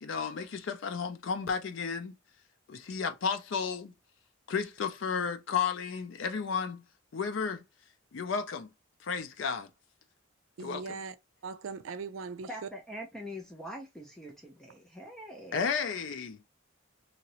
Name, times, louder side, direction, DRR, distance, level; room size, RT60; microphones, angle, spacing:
voice 1, 0.0-2.1 2.7-3.9 4.5-6.8 7.1-7.6 8.1-8.7 9.0-9.7 10.6-10.9 15.5-16.4, left 6 dB, 70° left, 0.4 m, -33 dB
voice 2, 10.6-11.2 11.4-12.7, right 5 dB, 80° right, 0.4 m, -39 dB
voice 3, 12.5-15.6, equal, 5° left, 0.6 m, -43 dB
2.9 x 2.8 x 2.8 m
head